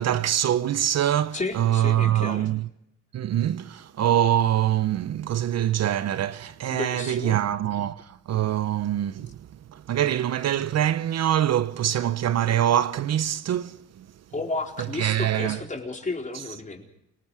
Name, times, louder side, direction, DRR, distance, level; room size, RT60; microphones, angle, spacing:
voice 1, 0.0-2.7 3.1-9.4 9.7-14.1 15.0-15.6, right 11 dB, 60° right, 0.8 m, -24 dB
voice 2, 1.3-2.5 6.7-7.4 14.3-16.9, left 3 dB, 25° left, 4.3 m, -32 dB
29.5 x 19.0 x 4.8 m
cardioid pair, 90°, 30 cm